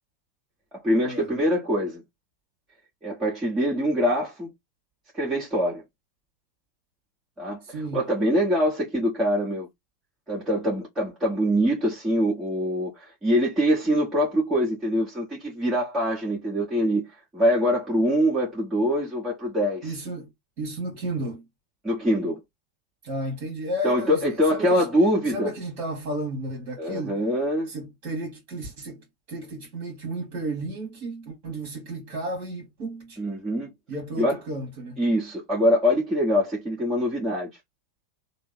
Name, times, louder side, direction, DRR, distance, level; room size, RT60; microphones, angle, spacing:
voice 1, 0.8-2.0 3.0-4.5 5.1-5.8 7.4-9.7 10.3-17.1 17.3-19.9 21.8-22.4 23.8-25.5 26.8-27.7 33.2-33.7 34.2-34.4 35.0-37.5, equal, 15° right, 1.5 m, -24 dB
voice 2, 7.6-8.0 19.8-20.3 20.6-21.4 23.0-24.2 24.5-24.9 25.2-27.2 27.7-33.2 33.9-35.0, right 1 dB, 40° right, 1.5 m, -33 dB
3.2 x 2.0 x 3.9 m
figure-of-eight pair, 90°, 0 cm